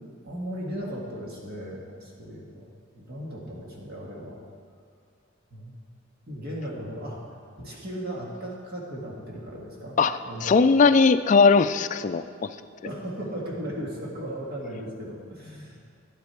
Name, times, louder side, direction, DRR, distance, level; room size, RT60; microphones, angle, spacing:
voice 1, 0.2-2.7 2.9-4.4 5.5-5.8 6.3-7.3 7.6-10.0 10.2-10.8 12.8-15.8, equal, 50° right, -3 dB, 1.8 m, -36 dB
voice 2, 10.0-12.5, left 4 dB, 40° left, 9 dB, 0.3 m, -19 dB
11.0 x 9.9 x 4.5 m, 2.3 s
head